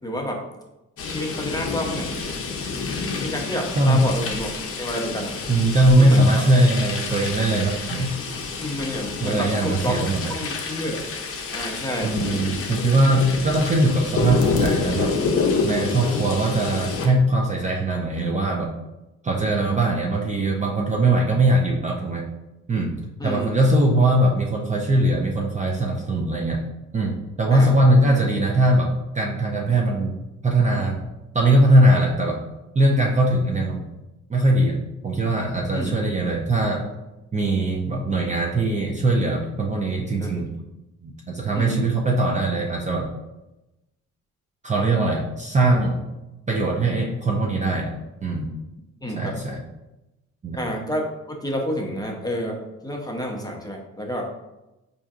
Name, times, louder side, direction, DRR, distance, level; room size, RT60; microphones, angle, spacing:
voice 1, 0.0-0.4 1.1-2.2 3.2-4.5 4.8-5.3 6.0-6.2 8.6-9.9 10.3-11.0 11.5-12.1 13.6-13.7 14.2-14.4 16.0-16.2 23.2-23.5 27.5-27.7 35.7-36.1 40.1-40.4 41.5-41.9 49.0-49.3 50.6-54.2, equal, 15° left, 0 dB, 0.7 m, -29 dB
sound 1, 1.0-17.1, left 4 dB, 50° left, 0.6 m, -28 dB
voice 2, 3.8-4.1 5.5-8.2 9.2-10.3 12.0-15.2 15.6-18.8 19.2-22.3 22.7-22.9 23.2-26.6 26.9-30.1 30.4-31.0 31.3-32.4 32.7-33.8 34.3-36.9 37.3-40.5 41.0-43.1 44.6-46.0 46.5-48.0 48.2-48.5 49.2-49.6 50.4-50.6, right 1 dB, 25° right, 0 dB, 0.4 m, -21 dB
4.4 x 2.6 x 2.4 m, 0.96 s
cardioid pair, 90°, 30 cm